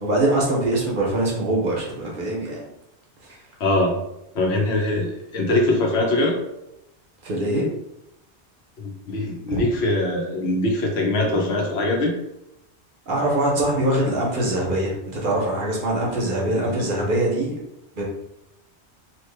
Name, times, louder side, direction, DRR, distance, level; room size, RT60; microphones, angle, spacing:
voice 1, 0.0-2.7 3.2-3.4 7.2-7.7 9.5-9.6 13.1-17.5 17.9-18.0, right 1 dB, 55° right, -3 dB, 0.8 m, -23 dB
voice 2, 3.6-3.9 4.3-6.4 8.8-12.1 16.5-16.7, left 2 dB, 70° left, 0 dB, 1.0 m, -22 dB
2.9 x 2.4 x 3.2 m, 0.86 s
omnidirectional pair, 1.2 m